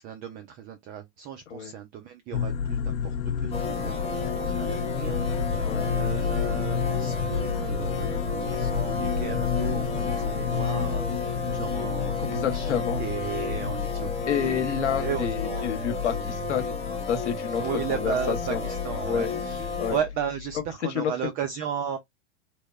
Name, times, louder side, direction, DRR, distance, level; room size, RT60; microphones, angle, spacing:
voice 1, 0.0-15.7 17.6-22.0, right 8 dB, 25° right, 0.3 m, -35 dB
sound 1, 2.3-20.7, left 6 dB, 55° left, 0.6 m, -31 dB
sound 2, 3.5-20.0, left 4 dB, 20° left, 0.8 m, -32 dB
voice 2, 12.4-13.0 14.3-16.7 17.1-17.6 17.9-18.6 19.1-19.3 19.8-20.0 20.9-21.1, left 8 dB, 85° left, 0.8 m, -28 dB
2.9 x 2.1 x 2.2 m
hypercardioid pair, 115°, 34 cm